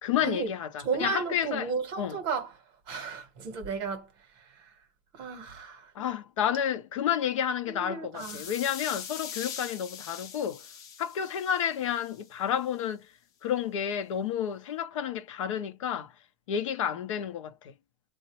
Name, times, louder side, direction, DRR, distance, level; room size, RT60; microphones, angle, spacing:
voice 1, 0.0-1.7 2.0-2.2 5.9-10.6 11.0-13.1 13.4-16.1 16.5-17.7, left 9 dB, 60° left, 0.7 m, -30 dB
voice 2, 0.8-2.5 2.9-4.1 4.4-4.7 5.2-5.9 7.7-8.5, right 5 dB, 25° right, 0.9 m, -34 dB
sound 1, 8.2-12.2, left 7 dB, 20° left, 0.5 m, -42 dB
3.8 x 2.1 x 3.0 m
supercardioid pair, 180°, 18 cm